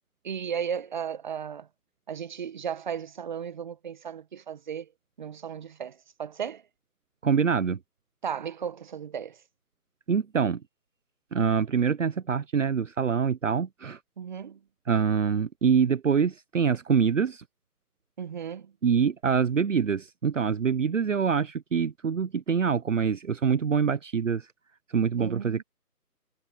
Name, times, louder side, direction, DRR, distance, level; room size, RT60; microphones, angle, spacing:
voice 1, 0.2-1.7 2.1-4.9 5.2-6.6 8.2-9.4 14.2-14.6 18.2-18.7 25.2-25.6, right 7 dB, 30° right, 1.5 m, -35 dB
voice 2, 7.2-7.8 10.1-10.6 11.3-14.0 14.9-17.4 18.8-24.5 24.9-25.6, right 6 dB, 50° right, 1.1 m, -25 dB
figure-of-eight pair, 165°, 47 cm